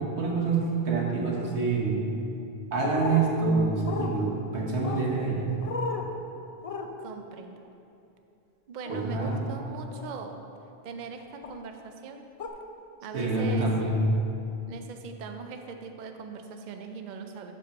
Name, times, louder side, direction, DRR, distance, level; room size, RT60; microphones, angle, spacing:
voice 1, 0.0-2.0 2.7-5.5 8.9-9.4 13.1-14.1, right 3 dB, 85° right, -3 dB, 1.5 m, -26 dB
sound 1, 2.9-3.2 3.9-4.1 4.8-5.1 5.6-6.1 6.6-6.9 8.9-9.0 9.9-10.2 11.4-11.6 12.4-12.5, left 4 dB, 45° left, 0.5 m, -34 dB
voice 2, 7.0-7.6 8.7-10.4 10.8-12.2 13.0-13.7 14.7-17.5, right 5 dB, 55° right, 5 dB, 0.6 m, -40 dB
6.5 x 5.1 x 5.8 m, 2.8 s
omnidirectional pair, 1.1 m